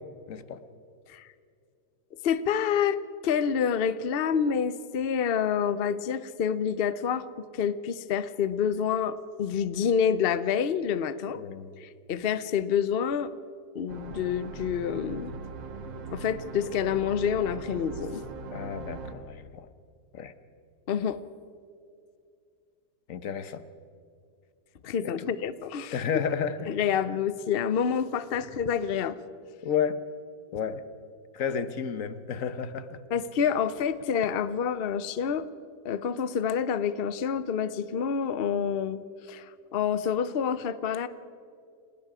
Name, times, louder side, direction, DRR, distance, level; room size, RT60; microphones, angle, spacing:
voice 1, 0.3-0.6 11.4-11.7 18.5-19.7 20.1-20.3 23.1-23.7 25.0-25.3 25.9-26.7 29.6-30.0 30.5-30.8 31.3-33.0, left 7 dB, 50° left, 12 dB, 1.2 m, -31 dB
voice 2, 2.2-11.4 11.8-13.3 13.7-15.3 16.1-18.2 20.9-21.2 24.8-26.0 26.7-29.2 33.1-35.5 35.8-39.0 39.3-41.1, left 7 dB, 75° left, 14 dB, 0.5 m, -28 dB
sound 1, 13.9-19.1, right 3 dB, 80° right, 2.2 m, -40 dB
29.5 x 19.5 x 4.9 m, 2.4 s
omnidirectional pair, 2.0 m